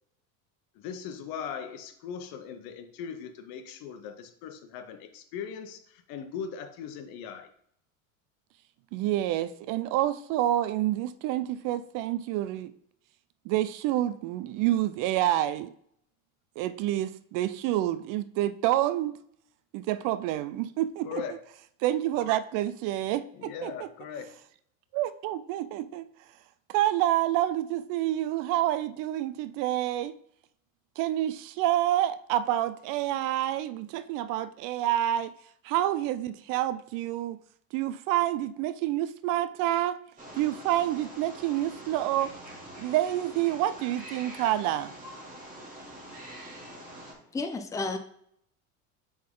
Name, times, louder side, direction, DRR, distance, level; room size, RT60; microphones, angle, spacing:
voice 1, 0.7-7.5 21.0-21.4 23.3-24.4, left 7 dB, 60° left, 1.1 m, -39 dB
voice 2, 8.9-12.7 13.5-15.7 16.6-19.2 19.7-21.2 21.8-23.9 24.9-26.1 26.7-30.2 31.0-35.3 35.6-37.4 37.7-40.0 40.4-42.3 42.8-44.9, right 13 dB, 50° right, 0.4 m, -28 dB
Wild animals, 40.2-47.1, right 1 dB, 20° right, 2.2 m, -45 dB
voice 3, 46.4-48.0, left 3 dB, 10° left, 0.5 m, -35 dB
7.4 x 3.9 x 3.7 m
supercardioid pair, 105°, 41 cm